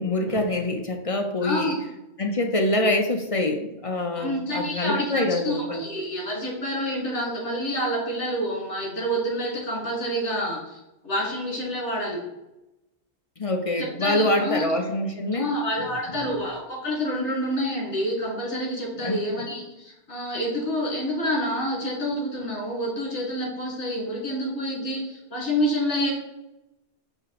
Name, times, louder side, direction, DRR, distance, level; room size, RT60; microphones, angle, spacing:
voice 1, 0.0-1.8 2.2-5.8 13.4-15.5 15.8-15.9 19.0-19.2, left 1 dB, 35° left, 4 dB, 0.7 m, -25 dB
voice 2, 1.4-1.8 4.2-12.2 14.0-14.6 15.3-26.1, equal, 80° left, -4 dB, 2.5 m, -28 dB
8.6 x 3.0 x 4.9 m, 0.93 s
omnidirectional pair, 1.1 m